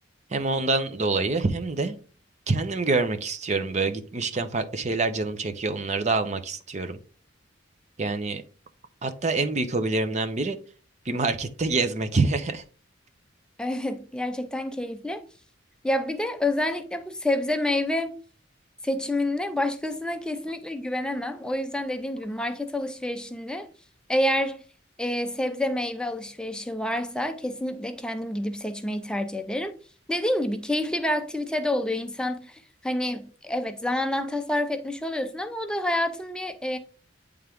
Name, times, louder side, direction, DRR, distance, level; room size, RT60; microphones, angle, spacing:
voice 1, 0.3-2.0 2.5-7.0 8.0-8.4 9.0-10.6 11.0-12.6, right 3 dB, 35° right, 0.6 m, -26 dB
voice 2, 13.6-15.2 15.8-18.2 18.8-23.7 24.1-24.6 25.0-29.7 30.1-36.8, left 1 dB, 5° left, 0.5 m, -28 dB
8.9 x 3.5 x 3.5 m
head